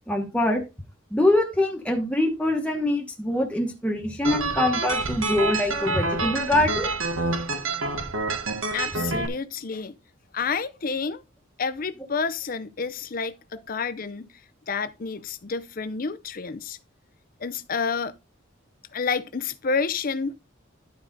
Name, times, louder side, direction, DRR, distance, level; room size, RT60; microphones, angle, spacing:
voice 1, 0.1-0.6 1.1-6.9, left 1 dB, 5° left, 1.1 m, -24 dB
sound 1, 4.2-9.3, right 3 dB, 85° right, 1.4 m, -27 dB
voice 2, 8.7-10.0 10.3-11.2 11.6-14.3 14.7-16.8 17.4-18.1 18.9-20.3, left 5 dB, 45° left, 0.5 m, -29 dB
11.5 x 4.8 x 3.9 m
head